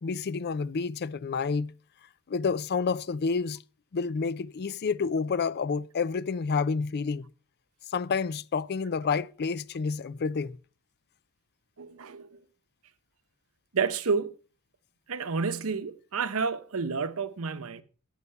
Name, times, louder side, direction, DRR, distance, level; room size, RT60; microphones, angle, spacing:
voice 1, 0.0-1.7 2.3-3.6 3.9-7.3 7.9-10.6, left 5 dB, 50° left, 0.4 m, -29 dB
voice 2, 11.8-12.4 13.7-14.3 15.1-17.8, right 5 dB, 70° right, 0.9 m, -30 dB
11.5 x 8.3 x 5.5 m
head